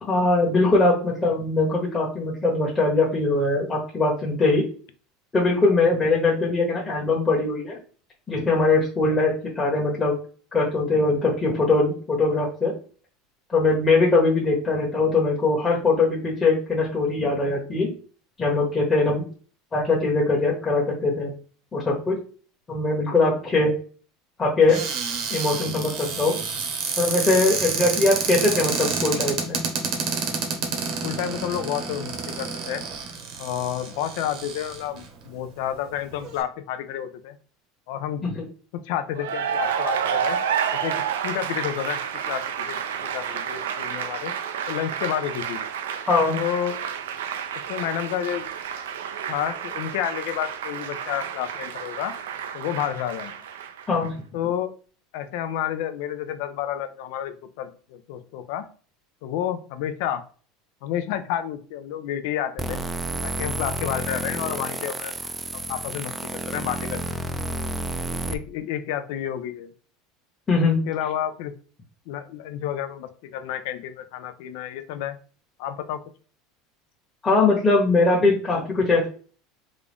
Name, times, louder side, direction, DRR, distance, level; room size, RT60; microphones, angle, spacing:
voice 1, 0.0-4.6 5.3-7.8 8.3-10.2 10.5-12.7 13.5-17.9 18.4-19.3 19.7-21.3 21.7-22.2 22.7-23.7 24.4-24.8 25.3-26.4 27.0-29.6 38.2-38.4 46.1-46.4 53.9-54.2 70.5-70.8 77.2-79.1, left 3 dB, 20° left, -4 dB, 1.1 m, -21 dB
Cupboard open or close, 24.7-35.1 35.7-35.8 36.1-36.4, right 5 dB, 60° right, 1.0 m, -29 dB
voice 2, 31.0-32.8 33.4-37.4 37.9-38.2 38.9-40.4 40.8-41.0 41.2-42.0 42.3-42.8 43.1-44.3 44.7-45.6 46.3-46.9 47.7-48.4 49.3-52.1 52.5-53.5 54.3-54.8 55.1-58.7 59.2-60.2 60.8-62.8 63.2-65.1 65.5-67.0 68.1-69.7 70.9-71.5 72.1-75.2 75.6-76.0, left 10 dB, 70° left, 10 dB, 0.5 m, -30 dB
Cheering / Applause, 39.1-54.1, right 8 dB, 90° right, 0.4 m, -30 dB
sound 1, 62.6-68.3, right 2 dB, 15° right, 0.4 m, -30 dB
3.7 x 2.3 x 3.4 m, 0.40 s
supercardioid pair, 105°, 0 cm